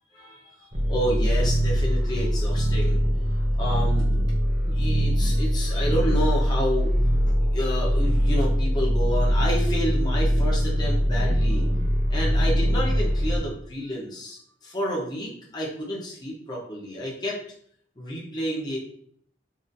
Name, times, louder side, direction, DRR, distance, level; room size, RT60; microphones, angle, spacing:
voice 1, 0.1-3.0 3.5-4.4 4.6-6.9 7.5-11.7 12.1-17.4 18.0-18.8, equal, 25° left, -5 dB, 0.9 m, -30 dB
sound 1, 0.7-13.4, equal, 35° right, 0.7 m, -22 dB
3.9 x 2.8 x 2.7 m, 0.63 s
head